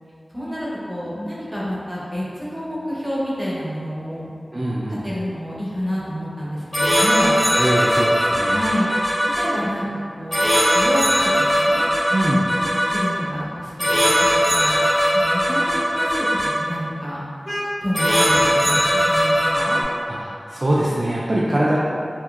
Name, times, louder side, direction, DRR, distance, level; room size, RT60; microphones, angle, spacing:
voice 1, 0.3-4.3 4.9-7.4 8.5-10.5 10.7-11.8 12.5-14.8 15.1-16.3 16.6-17.2 17.8-19.8, equal, 15° right, -8 dB, 0.8 m, -28 dB
voice 2, 4.5-5.0 7.6-8.6 12.1-12.5 20.5-21.8, right 1 dB, 45° right, -7 dB, 0.3 m, -22 dB
sound 1, 6.7-9.4 10.3-13.0 13.8-16.5 17.5-17.6 17.9-19.8, equal, 20° left, 0.9 m, -19 dB
2.9 x 2.6 x 2.4 m, 2.4 s
wide cardioid pair, 55°, 0 cm